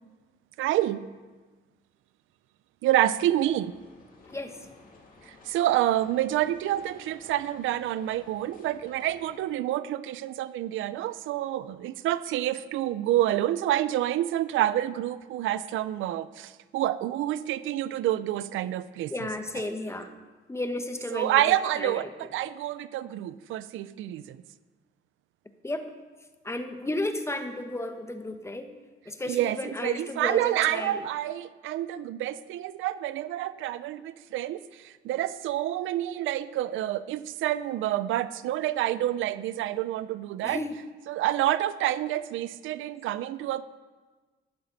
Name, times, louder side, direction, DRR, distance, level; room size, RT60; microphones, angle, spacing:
voice 1, 0.6-1.1 2.8-3.8 5.3-19.3 21.1-24.4 29.3-40.6 41.1-43.6, right 13 dB, 85° right, 15 dB, 0.5 m, -28 dB
sound 1, 3.2-9.4, left 3 dB, 45° left, 2.7 m, -54 dB
voice 2, 4.3-4.6 19.1-20.1 20.5-22.1 25.6-25.9 26.4-28.7 29.1-31.1 40.4-40.8, left 1 dB, 15° left, 7 dB, 1.2 m, -33 dB
12.0 x 12.0 x 4.0 m, 1.3 s
cardioid pair, 90°, 20 cm